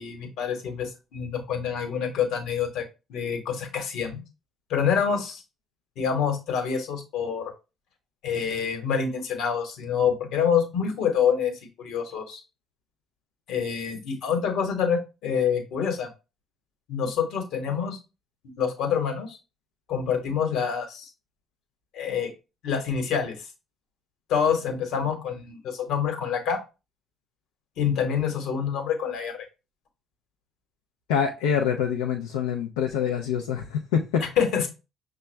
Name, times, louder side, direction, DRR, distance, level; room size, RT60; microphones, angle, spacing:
voice 1, 0.0-2.8 3.1-4.2 4.7-5.4 6.0-7.5 8.2-12.4 13.5-16.1 16.9-18.0 18.4-19.4 19.9-21.1 21.9-22.3 22.6-23.4 24.3-26.6 27.8-29.5 34.2-34.7, left 7 dB, 70° left, 1.1 m, -26 dB
voice 2, 31.1-34.3, left 7 dB, 90° left, 0.4 m, -25 dB
5.8 x 2.2 x 3.2 m
hypercardioid pair, 55°, 0 cm